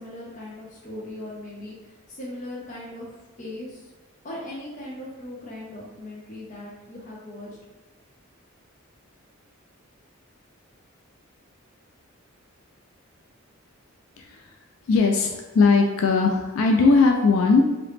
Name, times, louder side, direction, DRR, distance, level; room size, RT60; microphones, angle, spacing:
voice 1, 0.0-3.9 4.2-7.6, left 1 dB, 35° left, -4 dB, 0.6 m, -39 dB
voice 2, 14.2-14.5 14.9-17.6, left 4 dB, 85° left, 2 dB, 0.3 m, -19 dB
3.0 x 2.9 x 3.2 m, 1.1 s
head